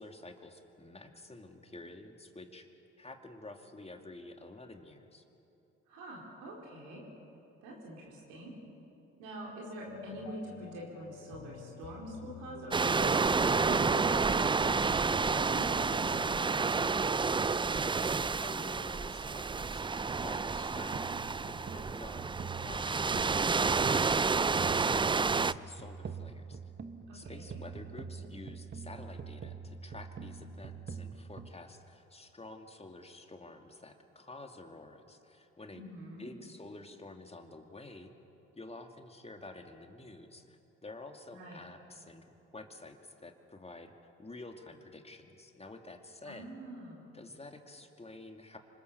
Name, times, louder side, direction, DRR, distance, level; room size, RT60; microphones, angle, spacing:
voice 1, 0.0-2.7 3.0-5.2 17.4-21.1 21.5-26.6 27.1-35.9 36.2-38.1 38.6-43.9 44.2-46.5 47.1-48.6, left 2 dB, 20° left, 4 dB, 2.5 m, -50 dB
voice 2, 5.9-7.0 7.6-8.5 9.2-16.1 27.1-27.6 35.7-36.3 41.3-41.6 46.2-47.2, right 1 dB, 80° right, -3 dB, 4.6 m, -44 dB
sound 1, 9.9-17.4, left 10 dB, 60° left, 1.1 m, -51 dB
sound 2, 12.7-25.5, right 4 dB, 15° right, 0.5 m, -30 dB
sound 3, 20.5-31.5, right 5 dB, 35° right, 1.3 m, -45 dB
26.0 x 20.5 x 7.0 m, 3.0 s
hypercardioid pair, 55°, 30 cm